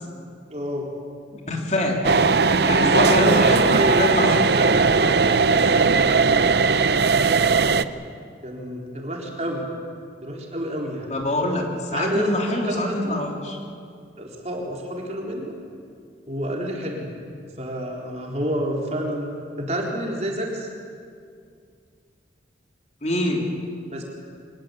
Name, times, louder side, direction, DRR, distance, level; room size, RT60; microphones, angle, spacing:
voice 1, 0.5-0.9 2.8-4.0 4.4-6.7 7.7-7.8 8.4-9.7 10.2-11.1 11.9-13.2 14.2-15.5 16.3-17.1 17.6-19.3 19.6-20.7 23.9-24.0, equal, 35° right, -1 dB, 4.1 m, -29 dB
voice 2, 1.3-2.0 2.6-3.6 4.0-4.4 11.1-13.6 23.0-23.4, left 1 dB, 40° left, 0 dB, 3.3 m, -25 dB
sound 1, 2.0-7.8, right 4 dB, 60° right, 0.7 m, -18 dB
25.0 x 20.0 x 8.5 m, 2.2 s
head